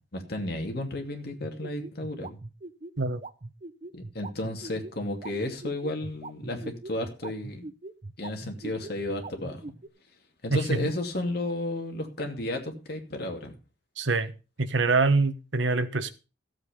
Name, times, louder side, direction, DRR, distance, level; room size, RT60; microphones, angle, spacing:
voice 1, 0.1-2.4 3.9-7.7 8.2-9.6 10.4-13.5, left 1 dB, 55° left, 2.7 m, -33 dB
sound 1, 1.4-9.9, right 2 dB, 40° right, 0.8 m, -41 dB
voice 2, 10.5-10.9 14.0-14.3 14.6-16.1, right 3 dB, 85° right, 1.2 m, -25 dB
14.0 x 8.0 x 5.3 m
head